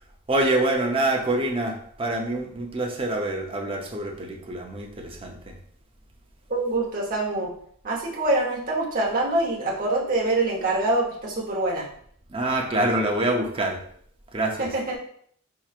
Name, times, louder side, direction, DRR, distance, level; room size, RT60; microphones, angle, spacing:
voice 1, 0.3-5.5 12.3-13.8 14.3-14.7, right 1 dB, 25° right, 1 dB, 0.6 m, -26 dB
voice 2, 6.5-7.5 7.8-11.9 14.6-15.0, right 2 dB, 45° right, -3 dB, 1.0 m, -25 dB
4.4 x 3.0 x 2.4 m, 0.62 s
head